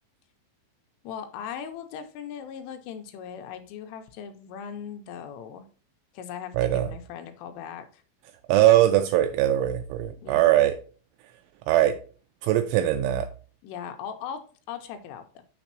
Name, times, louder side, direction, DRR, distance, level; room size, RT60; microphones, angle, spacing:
voice 1, 1.0-5.7 6.1-8.0 10.2-10.4 13.6-14.4 14.7-15.3, left 8 dB, 85° left, 6 dB, 3.2 m, -38 dB
voice 2, 6.6-6.9 8.5-10.8 11.7-12.0 12.4-13.3, right 13 dB, 85° right, 8 dB, 2.8 m, -21 dB
7.1 x 6.7 x 2.8 m, 0.38 s
omnidirectional pair, 5.9 m